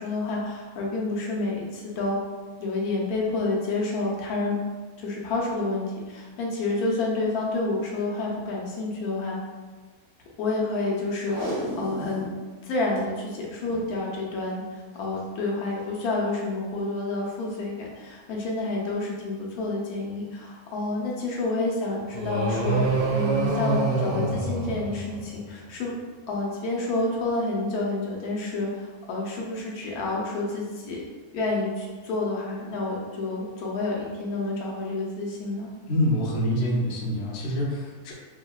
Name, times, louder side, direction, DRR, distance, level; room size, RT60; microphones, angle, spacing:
voice 1, 0.0-2.2 2.6-4.6 5.0-9.4 10.4-12.3 12.6-25.9 26.3-31.0 31.3-35.7, left 2 dB, 80° left, -3 dB, 1.1 m, -29 dB
Packing tape duct tape, 11.2-12.3 12.7-13.0 13.6-13.9 14.9-15.2 15.8-15.9, equal, 55° right, 1.3 m, -33 dB
sound 1, 22.1-25.5, right 3 dB, 85° right, 1.1 m, -26 dB
voice 2, 35.9-38.1, equal, 60° left, -3 dB, 0.6 m, -26 dB
3.5 x 2.1 x 2.2 m, 1.4 s
omnidirectional pair, 1.5 m